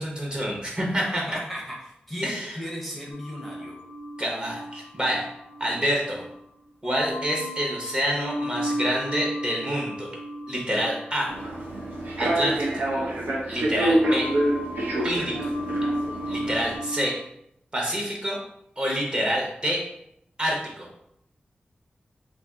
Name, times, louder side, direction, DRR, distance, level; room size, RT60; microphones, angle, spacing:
voice 1, 0.0-1.2 2.2-2.6 4.2-5.3 5.6-6.2 6.8-10.1 10.5-11.4 12.2-12.8 13.5-14.3 15.0-15.5 16.3-17.2 17.7-18.4 18.8-19.8 20.4-20.9, equal, 30° right, -2 dB, 0.9 m, -27 dB
voice 2, 1.1-3.8, equal, ahead, -4 dB, 0.6 m, -36 dB
sound 1, 3.1-6.4 6.8-13.7 13.9-17.2, equal, 85° left, 0.5 m, -35 dB
Human voice / Subway metro underground, 11.3-16.8, right 1 dB, 85° right, 0.6 m, -26 dB
2.5 x 2.3 x 3.5 m, 0.75 s
wide cardioid pair, 80°, 3 cm